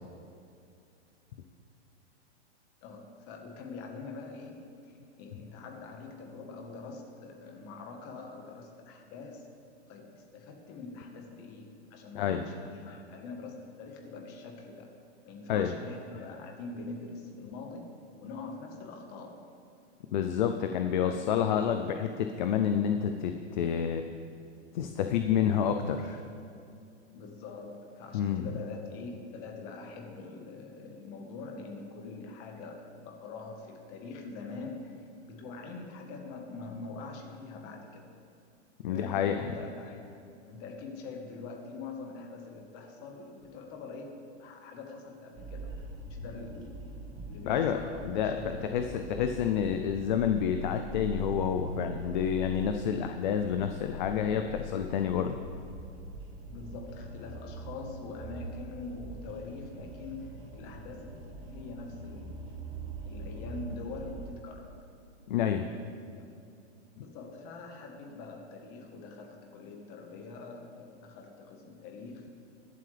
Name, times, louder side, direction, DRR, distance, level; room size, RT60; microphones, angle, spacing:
voice 1, 2.8-9.5 9.9-14.9 15.2-17.9 18.2-19.4 21.0-21.2 27.1-38.1 38.9-45.7 46.1-46.9 47.3-48.6 48.9-49.0 52.8-53.0 56.5-62.4 63.0-64.8 66.2-66.4 66.9-72.3, left 3 dB, 30° left, 2 dB, 1.3 m, -44 dB
voice 2, 20.1-24.0 24.7-26.2 28.1-28.5 38.8-39.5 47.5-47.8 48.0-55.4 65.3-65.6, left 8 dB, 45° left, 6 dB, 0.5 m, -29 dB
sound 1, 45.4-64.3, right 1 dB, 15° right, 0.7 m, -42 dB
22.5 x 7.6 x 3.3 m, 2.5 s
supercardioid pair, 165°, 35 cm